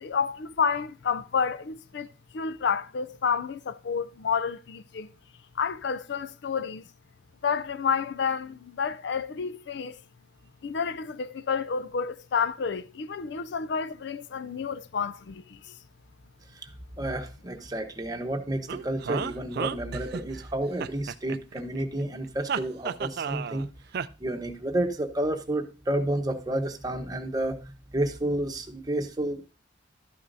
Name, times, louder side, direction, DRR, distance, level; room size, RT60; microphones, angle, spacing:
voice 1, 0.0-2.1 2.3-5.1 5.6-6.8 7.4-10.0 10.6-15.7, left 6 dB, 60° left, 0.4 m, -30 dB
voice 2, 17.0-23.7 24.2-29.4, right 1 dB, 20° right, 1.0 m, -30 dB
sound 1, 18.7-20.4 20.8-21.8 22.5-23.6 23.9-24.1, right 6 dB, 55° right, 0.4 m, -32 dB
12.0 x 9.4 x 2.7 m
head